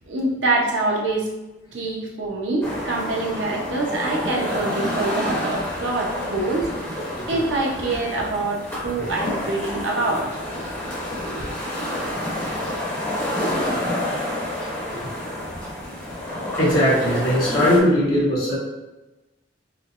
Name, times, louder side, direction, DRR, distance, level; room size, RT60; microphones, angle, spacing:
voice 1, 0.1-1.3 1.7-6.9 7.3-10.3, right 2 dB, 85° right, -1 dB, 0.7 m, -25 dB
sound 1, 2.6-17.8, left 1 dB, 15° left, 1.1 m, -29 dB
voice 2, 16.6-18.6, equal, 55° left, -8 dB, 1.5 m, -19 dB
4.4 x 2.2 x 2.4 m, 1.1 s
head